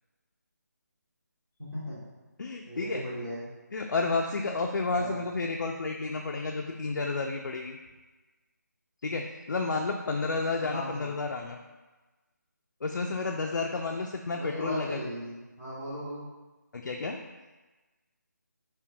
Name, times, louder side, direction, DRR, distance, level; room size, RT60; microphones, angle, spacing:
voice 1, 1.7-2.0 2.6-3.4 4.9-5.2 10.6-11.1 14.3-16.2, equal, ahead, -24 dB, 0.4 m, -37 dB
voice 2, 2.4-3.1 3.7-7.8 9.0-11.6 12.8-15.0 16.7-17.2, left 3 dB, 80° left, 2 dB, 0.4 m, -31 dB
5.6 x 2.2 x 2.6 m, 1.2 s
figure-of-eight pair, 180°, 10 cm